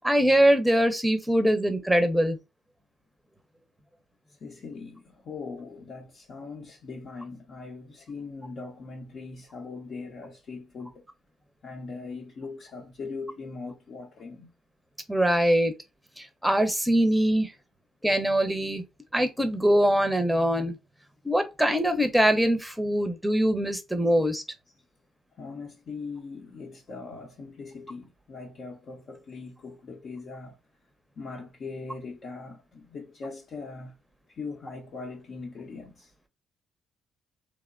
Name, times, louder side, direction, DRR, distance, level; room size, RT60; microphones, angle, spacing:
voice 1, 0.0-2.4 15.1-15.7 16.2-17.5 18.0-18.8 19.1-20.8 21.2-24.4, equal, 5° right, 0.7 m, -23 dB
voice 2, 4.4-11.0 11.6-14.5 25.4-30.6 31.2-33.9 34.3-36.1, left 4 dB, 55° left, 0.7 m, -40 dB
2.9 x 2.1 x 2.4 m
hypercardioid pair, 55°, 0 cm